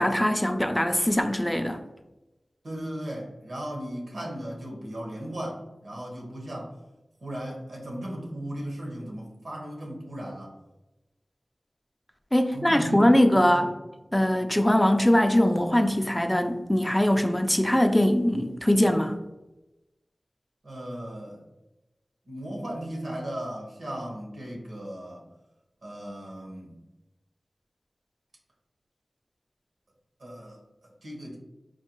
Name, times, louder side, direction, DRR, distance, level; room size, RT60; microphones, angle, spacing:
voice 1, 0.0-1.8 12.3-13.7 14.1-19.1, left 1 dB, 10° left, 6 dB, 0.3 m, -22 dB
voice 2, 2.6-6.7 7.2-10.5 12.5-13.7 20.6-21.4 22.3-25.2 25.8-26.8 30.2-31.4, right 1 dB, 85° right, -2 dB, 1.3 m, -36 dB
4.5 x 2.3 x 3.0 m, 1.0 s
wide cardioid pair, 90°, 0 cm